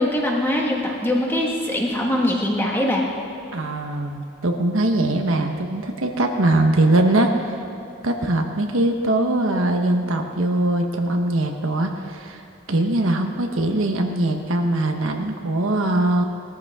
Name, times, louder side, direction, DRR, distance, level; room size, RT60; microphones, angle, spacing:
voice 1, 0.0-3.0, left 1 dB, 10° left, -2 dB, 1.6 m, -22 dB
voice 2, 3.5-7.6 8.0-12.4 12.7-16.2, right 1 dB, 75° right, 3 dB, 1.2 m, -21 dB
19.0 x 14.0 x 3.7 m, 2.8 s
head